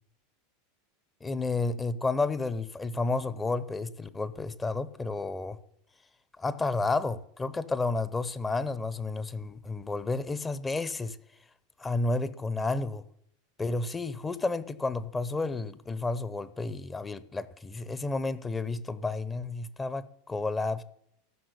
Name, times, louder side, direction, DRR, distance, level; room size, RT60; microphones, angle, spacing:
voice 1, 1.2-5.6 6.4-11.2 11.8-13.0 13.6-20.8, left 3 dB, 15° left, 16 dB, 0.9 m, -31 dB
14.0 x 6.4 x 8.2 m, 0.70 s
figure-of-eight pair, 85°, 0 cm